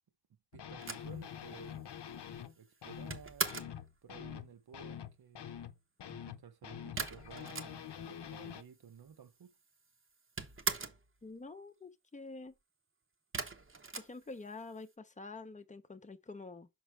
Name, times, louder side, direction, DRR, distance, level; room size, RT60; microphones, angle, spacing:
sound 1, 0.5-2.5 2.8-8.6, left 9 dB, 70° left, 0.8 m, -46 dB
voice 1, 0.5-1.8 2.6-3.5 4.0-5.5 6.1-9.5, right 7 dB, 60° right, 0.8 m, -54 dB
sound 2, 0.8-3.8 7.0-8.1 8.4-8.5 8.7-9.5 9.8-11.1 13.3-14.8, right 4 dB, 30° right, 0.8 m, -40 dB
voice 2, 11.2-12.5 13.9-16.7, left 3 dB, 15° left, 0.7 m, -47 dB
6.2 x 5.3 x 3.3 m
wide cardioid pair, 140°, 43 cm